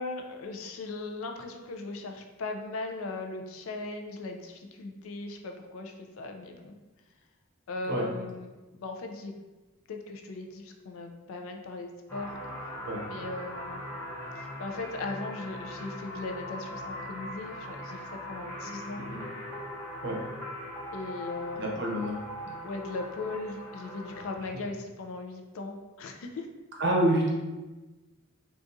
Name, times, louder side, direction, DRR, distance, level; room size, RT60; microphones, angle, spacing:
voice 1, 0.0-6.8 7.7-9.3 9.9-12.3 13.1-13.8 14.6-19.0 20.9-21.9 22.6-26.5, left 3 dB, 65° left, 3 dB, 0.4 m, -38 dB
voice 2, 7.9-8.2 12.8-13.1 19.0-19.2 20.0-20.3 21.6-22.1 22.4-22.5 26.8-27.3, right 1 dB, 55° right, -2 dB, 0.7 m, -28 dB
sound 1, 12.1-24.4, left 1 dB, 10° left, 0.6 m, -40 dB
3.8 x 2.4 x 2.5 m, 1.2 s
head